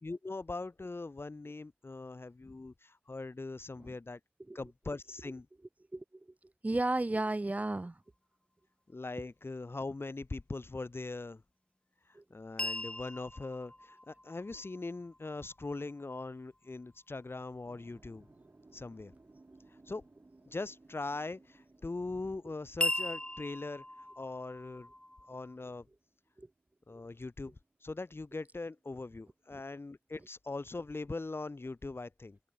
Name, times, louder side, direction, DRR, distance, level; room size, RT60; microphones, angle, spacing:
voice 1, 0.0-4.2 4.5-5.5 8.9-11.4 12.3-18.3 18.7-19.1 19.9-20.0 20.5-24.9 25.3-25.9 26.9-27.6 27.8-32.4, left 3 dB, 80° left, 1.3 m, -41 dB
voice 2, 5.9-6.3 6.6-8.0 12.1-12.2 12.6-12.7 26.4-26.5 29.5-29.6, right 2 dB, 40° right, 0.4 m, -34 dB
sound 1, 12.6-16.6 22.8-25.6, left 1 dB, 25° left, 0.9 m, -39 dB
sound 2, 17.6-27.8 28.0-29.7, right 2 dB, 80° right, 3.9 m, -63 dB
wide cardioid pair, 50°, 4 cm